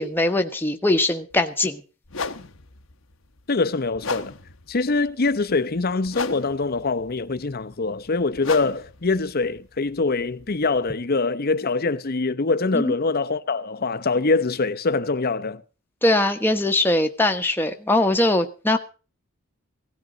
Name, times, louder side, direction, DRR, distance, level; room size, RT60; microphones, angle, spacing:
voice 1, 0.0-1.8 12.7-12.9 16.0-18.8, left 1 dB, 10° left, 1.2 m, -21 dB
sound 1, 1.3-1.4 2.1-10.9, left 4 dB, 70° left, 1.1 m, -36 dB
voice 2, 3.5-4.3 4.7-15.6, left 3 dB, 50° left, 0.8 m, -24 dB
17.5 x 13.5 x 3.9 m
head